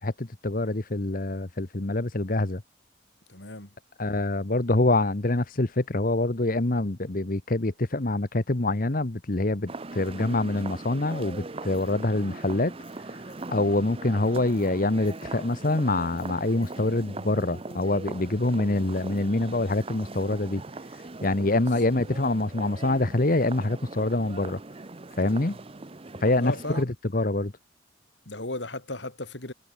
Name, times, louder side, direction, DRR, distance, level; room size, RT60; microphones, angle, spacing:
voice 1, 0.0-2.6 4.0-20.6 20.9-24.6 25.2-25.6 26.2-27.5, left 2 dB, 45° left, 1.2 m, -26 dB
voice 2, 3.3-3.7 21.4-21.6 25.2-25.5 26.4-26.9 28.3-29.5, left 2 dB, 60° left, 3.5 m, -36 dB
Footsteps in Street Woman, 9.7-26.8, right 3 dB, 30° right, 0.7 m, -40 dB
Tools, 11.7-11.9 12.8-13.0 13.3-13.5 14.5-14.7 15.0-15.3 16.2-16.3 16.6-16.8, left 16 dB, 85° left, 6.6 m, -59 dB
head